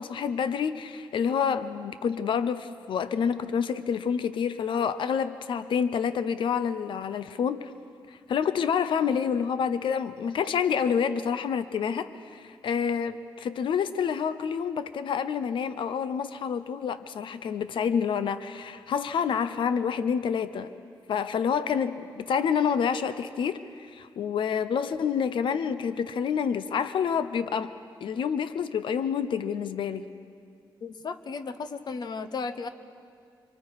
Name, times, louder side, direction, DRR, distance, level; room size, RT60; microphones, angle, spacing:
voice 1, 0.0-7.7 8.3-20.7 21.1-27.7 28.0-30.1, left 7 dB, 75° left, 12 dB, 0.7 m, -28 dB
voice 2, 30.8-32.7, left 4 dB, 55° left, 11 dB, 1.0 m, -35 dB
26.5 x 24.0 x 4.8 m, 2.2 s
cardioid pair, 100°, 9 cm